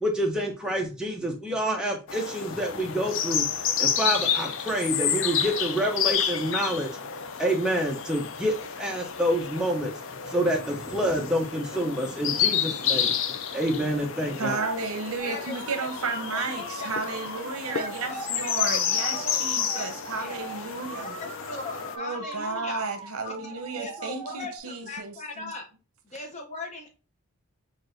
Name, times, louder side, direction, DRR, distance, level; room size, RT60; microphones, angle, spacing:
voice 1, 0.0-6.9 7.4-9.9 10.2-13.1 13.5-14.7, right 1 dB, 5° right, 0.7 m, -27 dB
sound 1, 2.1-22.0, left 8 dB, 60° left, 0.4 m, -30 dB
voice 2, 14.4-21.2 21.9-25.5, right 4 dB, 80° right, 0.8 m, -33 dB
voice 3, 15.2-15.5 16.1-16.7 17.7-18.8 19.1-19.4 19.7-19.9 20.2-20.3 20.9-22.8 23.2-25.7 26.0-26.9, left 2 dB, 30° left, 0.8 m, -38 dB
sound 2, 15.2-24.6, right 3 dB, 20° right, 1.9 m, -41 dB
6.0 x 2.6 x 2.5 m
head